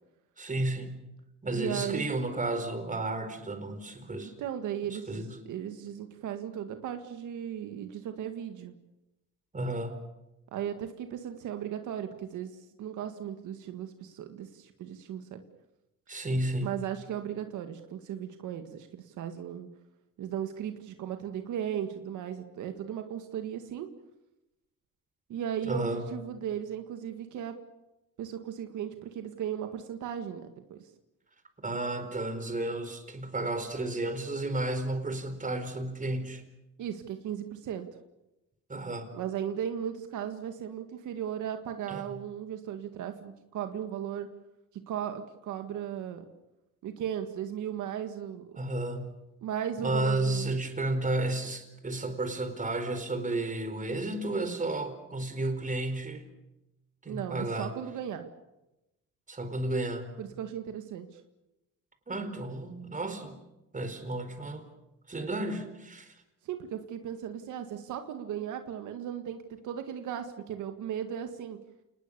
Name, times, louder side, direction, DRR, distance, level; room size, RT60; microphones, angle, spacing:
voice 1, 0.4-1.0 1.4-4.3 4.9-5.4 9.5-10.0 16.1-16.7 25.6-26.1 31.6-36.4 38.7-39.1 41.9-42.2 48.6-49.2 49.8-56.2 57.0-57.7 59.3-60.1 62.1-63.4 63.7-64.7 65.1-66.1, right 2 dB, 25° right, 8 dB, 4.5 m, -32 dB
voice 2, 1.5-2.1 4.4-5.1 5.5-8.8 10.5-15.4 16.6-19.7 20.2-23.9 25.3-27.6 28.2-30.9 36.8-37.9 39.1-44.3 44.7-46.3 46.8-48.5 49.4-50.5 57.1-58.3 60.2-61.2 66.4-71.6, right 9 dB, 80° right, 7 dB, 1.9 m, -36 dB
28.5 x 20.0 x 6.9 m, 0.94 s
cardioid pair, 90°, 30 cm